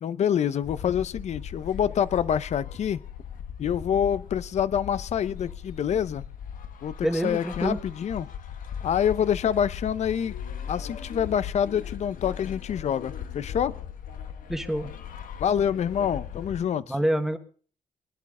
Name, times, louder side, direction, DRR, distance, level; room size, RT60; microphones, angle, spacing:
voice 1, 0.0-3.0 3.6-6.2 6.8-8.3 8.8-10.3 10.7-13.7 15.4-16.9, left 8 dB, 55° left, 0.6 m, -26 dB
sound 1, 0.6-16.7, left 8 dB, 75° left, 1.3 m, -38 dB
voice 2, 7.0-7.8 14.5-14.9 16.9-17.4, right 1 dB, 5° right, 1.4 m, -26 dB
23.0 x 11.0 x 3.7 m
wide cardioid pair, 145°, 14 cm